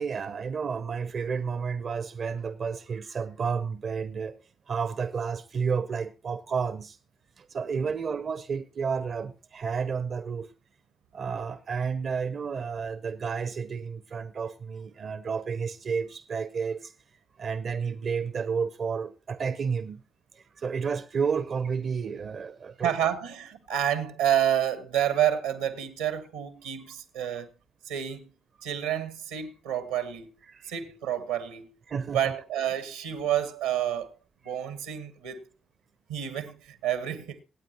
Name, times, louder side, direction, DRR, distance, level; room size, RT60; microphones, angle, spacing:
voice 1, 0.0-4.4 4.7-7.0 7.4-10.5 11.1-16.9 17.4-20.0 20.4-22.9 27.3-27.4 30.5-30.7 31.9-32.3, right 6 dB, 55° right, 0.7 m, -31 dB
voice 2, 22.8-27.5 27.8-28.3 28.6-30.3 30.6-31.7 32.1-34.2 34.4-35.5 36.1-37.4, right 10 dB, 85° right, 1.2 m, -29 dB
24.5 x 8.9 x 2.9 m
hypercardioid pair, 40°, 0 cm